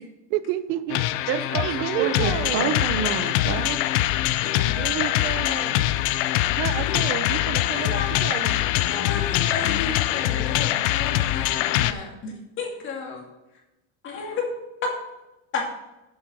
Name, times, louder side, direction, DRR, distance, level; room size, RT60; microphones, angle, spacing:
voice 1, 0.3-1.0 1.5-2.7 4.6-5.8 6.6-8.6, right 13 dB, 75° right, 13 dB, 0.8 m, -30 dB
sound 1, 0.9-11.9, left 14 dB, 65° left, 0.6 m, -23 dB
voice 2, 1.3-3.8, right 7 dB, 35° right, 7 dB, 0.5 m, -28 dB
voice 3, 7.9-8.3 8.8-13.2 14.0-14.4 15.5-15.6, left 4 dB, 30° left, 0 dB, 2.3 m, -33 dB
8.0 x 7.6 x 5.4 m, 0.97 s
cardioid pair, 175°, 40 cm